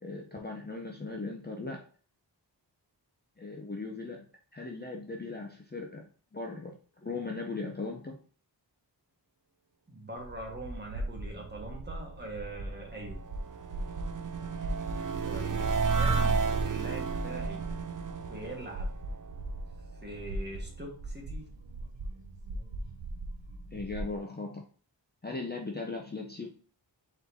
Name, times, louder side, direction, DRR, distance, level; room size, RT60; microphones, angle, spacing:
voice 1, 0.0-1.8 3.4-4.3 4.5-8.2 23.7-24.6 25.2-26.5, left 3 dB, 25° left, 0 dB, 0.7 m, -38 dB
voice 2, 9.9-13.2 15.3-17.6 18.3-18.9 20.0-21.5, right 1 dB, 25° right, -1 dB, 1.5 m, -42 dB
sound 1, 10.1-24.2, right 1 dB, 85° right, 0.8 m, -40 dB
sound 2, 12.6-19.7, right 5 dB, 45° right, 0.5 m, -32 dB
4.3 x 4.2 x 2.7 m, 0.41 s
wide cardioid pair, 80°, 43 cm